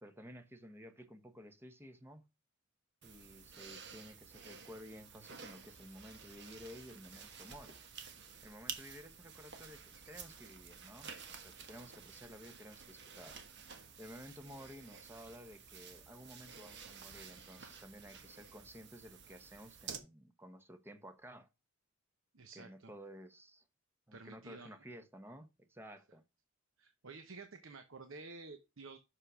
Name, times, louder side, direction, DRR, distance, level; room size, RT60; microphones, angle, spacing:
voice 1, 0.0-2.3 3.0-7.8 8.4-13.4 14.0-21.5 22.5-23.6 24.1-26.2, equal, 10° right, 1.1 m, -53 dB
sound 1, 3.0-20.0, right 6 dB, 60° right, 1.4 m, -52 dB
voice 2, 22.3-22.9 24.1-24.8 26.8-29.0, right 3 dB, 80° right, 1.0 m, -51 dB
6.5 x 5.5 x 6.1 m
head